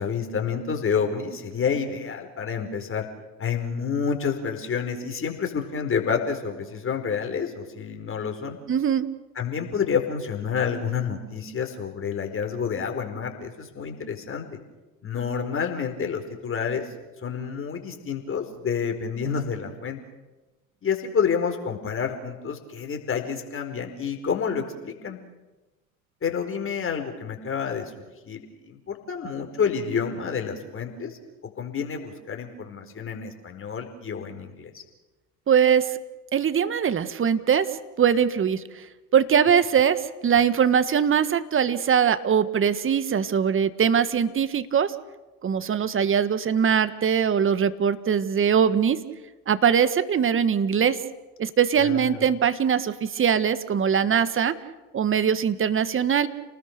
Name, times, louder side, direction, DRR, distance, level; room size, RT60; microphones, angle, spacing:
voice 1, 0.0-3.1 3.4-8.6 9.4-14.6 15.0-16.9 17.2-20.0 20.8-25.2 26.2-27.9 28.2-28.4 28.7-31.2 31.4-34.8 51.8-52.2, left 6 dB, 30° left, 4 dB, 4.7 m, -29 dB
voice 2, 8.7-9.1 35.5-35.9 36.3-37.7 38.0-38.8 39.1-44.9 45.4-49.0 49.5-51.0 51.4-54.5 54.9-56.3, right 7 dB, 30° right, 13 dB, 1.7 m, -22 dB
30.0 x 19.5 x 6.7 m, 1.1 s
hypercardioid pair, 80°, 43 cm